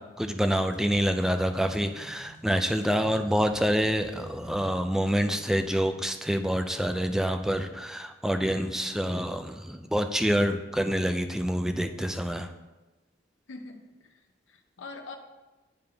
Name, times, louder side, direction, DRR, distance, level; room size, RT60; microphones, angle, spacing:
voice 1, 0.0-12.5, equal, 5° right, 7 dB, 0.3 m, -27 dB
sound 1, 0.7-5.9, right 1 dB, 70° right, 1.4 m, -51 dB
voice 2, 13.5-14.2 14.5-15.2, left 3 dB, 75° left, 5 dB, 0.7 m, -43 dB
10.5 x 3.5 x 3.4 m, 1.1 s
head